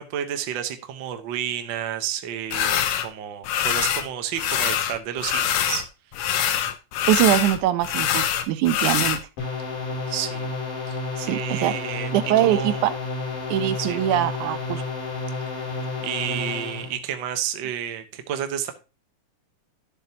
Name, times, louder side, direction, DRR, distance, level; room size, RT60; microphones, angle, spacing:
voice 1, 0.0-5.8 10.1-10.5 10.9-12.8 13.8-14.0 15.5-18.7, right 10 dB, 65° right, 8 dB, 1.2 m, -31 dB
sound 1, 2.5-3.1 3.4-4.1 4.4-5.9 6.1-9.2, left 10 dB, 70° left, 1.9 m, -24 dB
voice 2, 7.1-9.2 11.2-11.8 12.1-12.9 13.5-14.8, right 12 dB, 85° right, 13 dB, 2.2 m, -22 dB
sound 2, 9.4-16.9, left 3 dB, 85° left, 4.6 m, -31 dB
12.0 x 7.2 x 2.8 m, 0.30 s
omnidirectional pair, 3.5 m